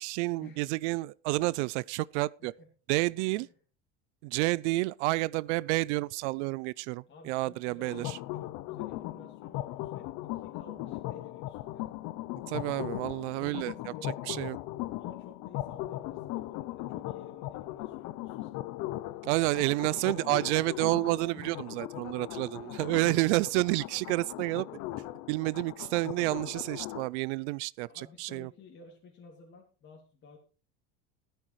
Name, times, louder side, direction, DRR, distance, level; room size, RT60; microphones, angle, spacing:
voice 1, 0.0-2.5 2.9-3.5 4.2-8.0 12.5-13.7 14.3-14.6 19.2-24.7 25.3-28.5, right 21 dB, 85° right, 0.5 m, -29 dB
voice 2, 7.1-11.9 13.3-14.5 15.0-18.6 21.3-21.6 22.8-23.0 24.9-25.1 27.9-30.4, left 3 dB, 35° left, 2.6 m, -53 dB
sound 1, 7.9-27.1, left 16 dB, 55° left, 0.7 m, -39 dB
14.5 x 13.0 x 3.1 m
supercardioid pair, 135°, 34 cm